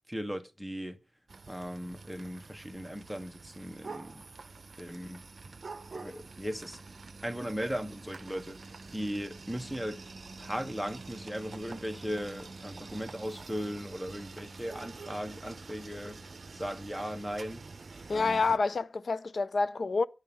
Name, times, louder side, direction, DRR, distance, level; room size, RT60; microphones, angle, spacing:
voice 1, 0.1-1.0 1.5-4.2 4.8-5.2 5.9-6.8 7.2-10.0 10.4-16.2 16.5-17.6 18.1-18.4, equal, ahead, 1.1 m, -37 dB
sound 1, 1.3-18.6, right 3 dB, 50° right, 0.8 m, -47 dB
voice 2, 18.1-20.1, left 4 dB, 55° left, 0.5 m, -28 dB
10.0 x 5.5 x 7.0 m
wide cardioid pair, 125°, 0 cm